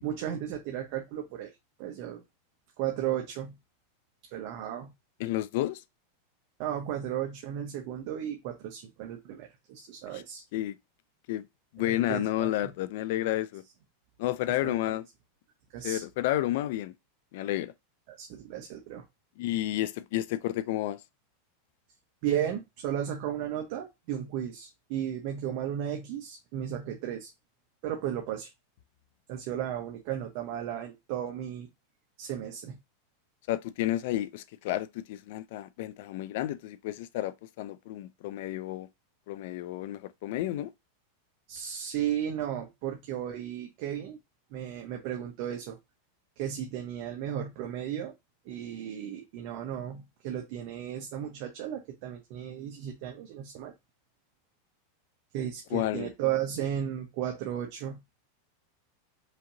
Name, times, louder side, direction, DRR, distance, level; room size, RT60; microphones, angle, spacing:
voice 1, 0.0-1.5 1.8-2.2 2.8-3.5 4.3-4.9 6.6-10.4 11.8-12.7 14.6-14.7 15.7-16.0 18.1-19.0 22.2-27.3 27.8-28.5 29.3-31.7 32.2-32.8 41.5-44.2 44.5-45.8 46.4-48.1 48.5-53.7 55.3-58.0, right 10 dB, 55° right, 0.9 m, -34 dB
voice 2, 5.2-5.8 10.1-10.2 10.5-10.8 11.3-11.4 11.7-13.6 14.2-15.0 15.8-16.9 17.3-17.7 19.4-21.0 33.5-38.9 39.3-40.7 55.7-56.1, left 14 dB, 65° left, 0.4 m, -31 dB
5.1 x 2.8 x 2.7 m
supercardioid pair, 135°, 0 cm